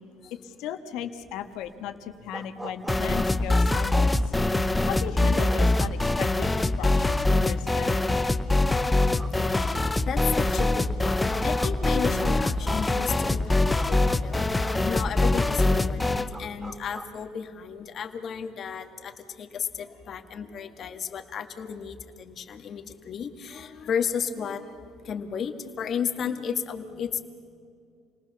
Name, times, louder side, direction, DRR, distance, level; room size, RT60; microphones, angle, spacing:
voice 1, 0.4-4.3 4.9-8.1, left 9 dB, 75° left, 8 dB, 1.6 m, -37 dB
sound 1, 1.2-17.1, right 2 dB, 10° right, 1.2 m, -44 dB
sound 2, 2.9-16.3, left 2 dB, 10° left, 0.8 m, -24 dB
voice 2, 8.4-9.2 9.5-27.2, left 7 dB, 45° left, 7 dB, 1.7 m, -34 dB
29.0 x 19.5 x 6.9 m, 2.3 s
cardioid pair, 115°, 0 cm